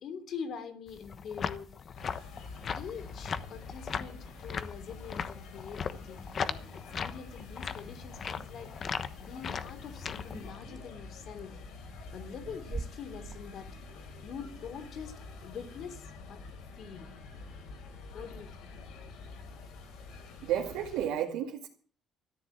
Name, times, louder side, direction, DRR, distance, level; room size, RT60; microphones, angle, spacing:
voice 1, 0.0-2.0 2.7-8.8 9.2-11.6 12.1-13.8 14.2-16.4 16.7-17.1 18.1-18.7, left 6 dB, 60° left, 3.2 m, -44 dB
sound 1, 0.9-10.5, left 6 dB, 40° left, 1.1 m, -38 dB
sound 2, 1.9-21.1, left 3 dB, 80° left, 4.7 m, -47 dB
sound 3, 10.3-11.4 12.0-13.4, right 4 dB, 25° right, 0.9 m, -42 dB
voice 2, 20.4-21.7, right 10 dB, 90° right, 2.3 m, -32 dB
14.0 x 10.5 x 7.5 m
cardioid pair, 120°, 0 cm